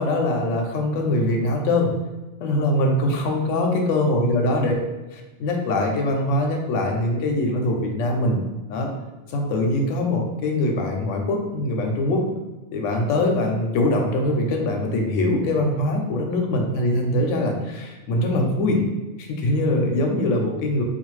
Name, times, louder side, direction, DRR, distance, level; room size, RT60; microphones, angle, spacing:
voice 1, 0.0-1.9 2.4-4.7 5.1-8.4 8.7-8.9 9.3-12.3 12.7-18.8 19.2-20.8, left 1 dB, 75° left, 1 dB, 0.9 m, -22 dB
2.4 x 2.3 x 3.1 m, 1.1 s
omnidirectional pair, 1.3 m